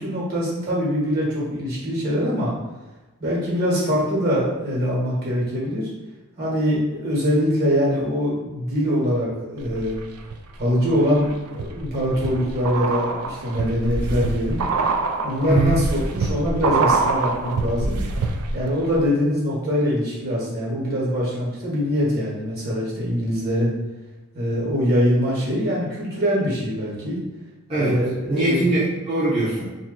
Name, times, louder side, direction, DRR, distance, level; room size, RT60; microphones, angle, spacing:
voice 1, 0.0-2.5 3.2-5.9 6.4-10.0 10.6-14.6 15.2-18.0 18.5-23.7 24.3-27.2 27.7-28.7, equal, 45° right, -6 dB, 1.3 m, -23 dB
sound 1, 9.6-10.3 10.8-18.7 18.9-19.0, right 3 dB, 80° right, 0.4 m, -25 dB
voice 2, 15.4-15.8 27.7-28.0 28.3-29.7, right 2 dB, 25° right, -11 dB, 0.8 m, -22 dB
2.9 x 2.5 x 3.7 m, 1.2 s
head